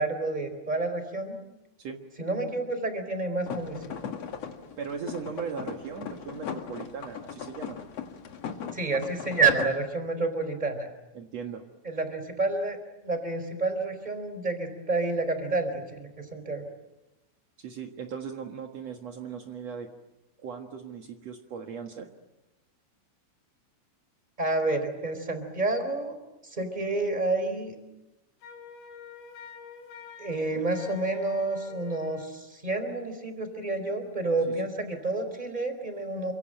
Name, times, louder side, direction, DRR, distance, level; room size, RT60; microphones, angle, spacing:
voice 1, 0.0-1.4 2.2-3.9 8.7-10.9 11.8-12.8 13.0-16.6 24.4-26.2 26.4-27.8 30.2-36.3, right 3 dB, 10° right, 8 dB, 3.6 m, -29 dB
sound 1, 3.5-9.7, left 7 dB, 55° left, 1.9 m, -38 dB
voice 2, 4.8-7.8 11.1-11.6 17.6-19.9 20.4-22.1 30.5-30.6, right 6 dB, 75° right, 3 dB, 1.5 m, -38 dB
Wind instrument woodwind instrument, 28.4-32.4, left 6 dB, 85° left, 4.7 m, -47 dB
29.0 x 25.5 x 7.8 m, 0.99 s
omnidirectional pair, 5.7 m